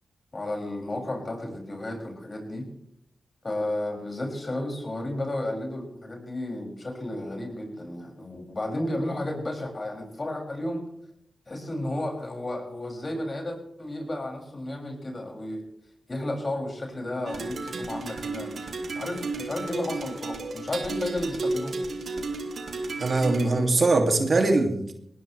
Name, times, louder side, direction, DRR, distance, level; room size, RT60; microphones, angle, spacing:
voice 1, 0.3-2.7 3.4-10.8 11.5-15.6 16.1-18.7 18.9-21.8, left 1 dB, 40° left, 1 dB, 6.8 m, -32 dB
sound 1, 17.3-23.5, right 3 dB, 75° right, 2.6 m, -33 dB
voice 2, 23.0-24.9, right 2 dB, 55° right, 4 dB, 2.7 m, -22 dB
20.0 x 18.5 x 3.4 m, 0.72 s
cardioid pair, 50°, 0 cm